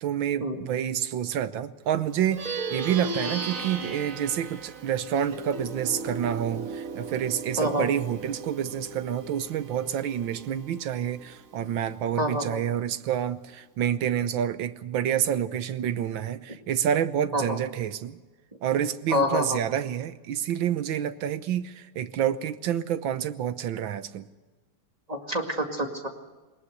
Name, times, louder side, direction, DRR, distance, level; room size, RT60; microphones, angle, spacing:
voice 1, 0.0-18.2 18.6-24.3, right 9 dB, 70° right, 12 dB, 1.6 m, -28 dB
Plucked string instrument, 2.2-11.9, right 3 dB, 45° right, 1.5 m, -37 dB
voice 2, 7.6-7.9 12.2-12.6 17.3-17.6 19.1-19.6 25.1-26.1, equal, 20° right, 3 dB, 2.0 m, -27 dB
21.0 x 20.0 x 6.5 m, 1.2 s
omnidirectional pair, 2.4 m